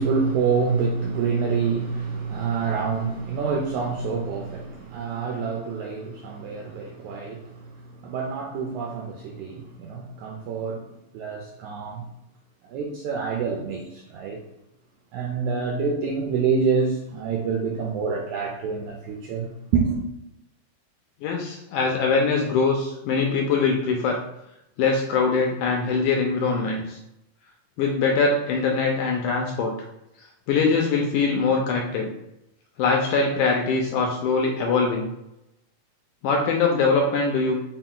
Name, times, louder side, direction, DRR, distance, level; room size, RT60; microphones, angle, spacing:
voice 1, 0.0-12.1 12.7-14.4 15.1-20.0, right 5 dB, 80° right, 1.7 m, -27 dB
voice 2, 21.2-24.2 24.8-27.0 27.8-29.7 30.5-32.1 32.8-35.1 36.2-37.6, left 4 dB, 80° left, 1.8 m, -22 dB
5.3 x 2.3 x 3.7 m
omnidirectional pair, 3.9 m